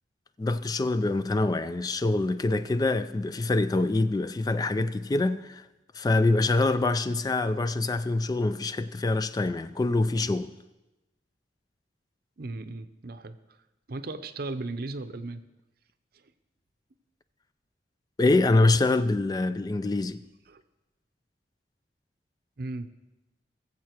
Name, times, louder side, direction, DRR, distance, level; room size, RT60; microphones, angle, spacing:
voice 1, 0.4-5.7 5.9-10.5 18.2-20.2, left 2 dB, 20° left, 0.3 m, -25 dB
voice 2, 12.4-13.4 13.9-15.4 20.5-20.6 22.6-22.9, right 2 dB, 60° right, 0.7 m, -36 dB
20.0 x 7.4 x 4.5 m
head